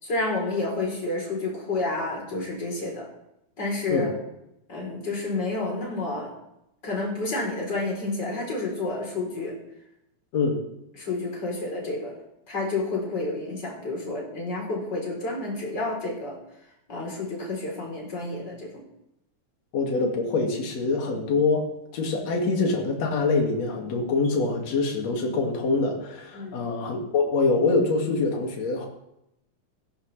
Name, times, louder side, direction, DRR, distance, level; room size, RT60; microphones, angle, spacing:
voice 1, 0.0-3.1 3.6-4.1 4.7-6.3 6.8-9.6 10.9-12.1 12.5-16.4 16.9-18.8 26.3-26.6, left 2 dB, 30° left, -1 dB, 4.3 m, -30 dB
voice 2, 19.7-21.7 21.9-28.9, left 3 dB, 50° left, 0 dB, 3.3 m, -24 dB
17.0 x 16.0 x 3.4 m, 0.84 s
omnidirectional pair, 4.2 m